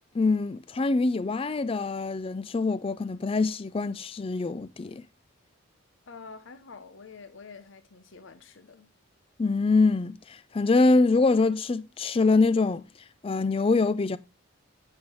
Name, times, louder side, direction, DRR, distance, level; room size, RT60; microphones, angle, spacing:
voice 1, 0.1-5.0 9.4-12.8 13.2-14.2, left 3 dB, 25° left, 0.4 m, -24 dB
voice 2, 6.1-8.9, left 4 dB, 65° left, 0.7 m, -47 dB
8.6 x 5.6 x 3.1 m
head